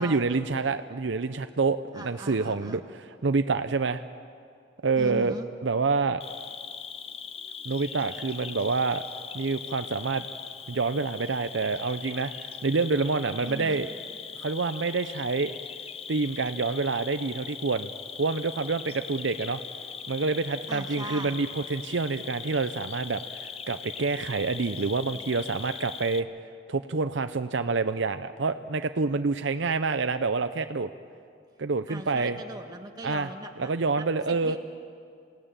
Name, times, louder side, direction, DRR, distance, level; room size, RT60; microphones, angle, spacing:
voice 1, 0.0-4.0 4.8-5.3 5.6-6.2 7.6-9.0 9.3-10.3 10.7-13.9 14.3-15.5 16.1-17.9 18.2-19.6 20.1-26.3 26.7-30.9 31.6-32.4 33.0-33.3 33.6-34.6, right 4 dB, 65° right, 10 dB, 0.6 m, -27 dB
voice 2, 1.9-2.8 5.0-5.5 13.4-13.8 20.7-21.4 31.9-33.7 34.0-34.6, right 1 dB, 20° right, 3 dB, 1.6 m, -40 dB
Cricket, 6.2-26.2, left 7 dB, 30° left, 0.7 m, -40 dB
28.0 x 17.5 x 8.9 m, 2.3 s
head